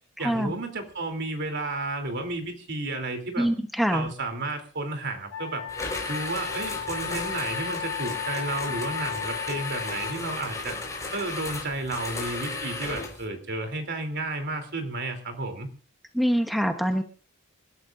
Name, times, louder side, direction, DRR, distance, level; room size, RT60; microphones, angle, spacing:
voice 1, 0.2-3.5 3.9-5.6 6.1-10.8 11.1-15.7, right 2 dB, 55° right, 5 dB, 3.2 m, -32 dB
voice 2, 3.4-4.1 16.1-17.0, equal, ahead, 5 dB, 1.0 m, -24 dB
Wind instrument woodwind instrument, 5.3-10.2, left 8 dB, 90° left, 1.9 m, -36 dB
sound 1, 5.7-13.3, left 3 dB, 15° left, 4.5 m, -34 dB
27.5 x 12.5 x 2.6 m, 0.37 s
head